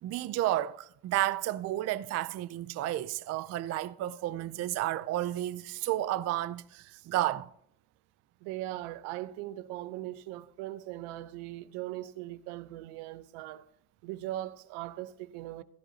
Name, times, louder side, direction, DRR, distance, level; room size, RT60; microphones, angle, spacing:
voice 1, 0.0-7.5, right 14 dB, 35° right, 0.4 m, -32 dB
voice 2, 8.4-13.6 14.0-15.6, right 15 dB, 75° right, 0.9 m, -39 dB
16.0 x 10.0 x 2.8 m
cardioid pair, 130°, 49 cm